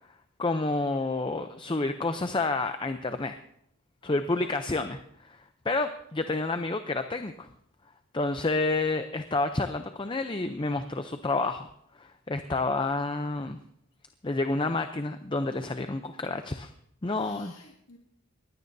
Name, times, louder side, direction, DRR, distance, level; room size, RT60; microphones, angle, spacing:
voice 1, 0.4-3.4 4.0-7.5 8.1-11.7 11.9-13.6 14.2-16.7 17.0-17.5, left 3 dB, 20° left, 8 dB, 0.5 m, -29 dB
voice 2, 4.0-4.5 17.1-18.0, left 3 dB, 85° left, -1 dB, 1.9 m, -53 dB
21.5 x 16.0 x 2.7 m, 0.70 s
head